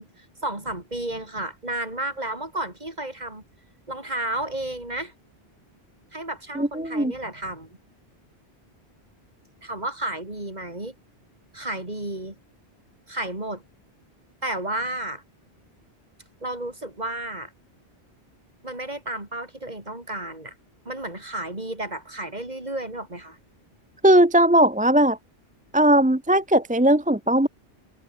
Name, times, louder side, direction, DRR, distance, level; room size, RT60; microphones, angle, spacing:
voice 1, 0.0-3.4 3.9-5.1 6.1-7.8 9.6-10.9 11.5-12.4 13.1-13.6 14.4-15.2 16.4-17.5 18.6-20.5 20.8-23.4, right 1 dB, 40° right, 4.3 m, -32 dB
voice 2, 6.6-7.1 24.0-25.2 25.7-27.5, right 1 dB, 10° right, 0.7 m, -18 dB
omnidirectional pair, 1.1 m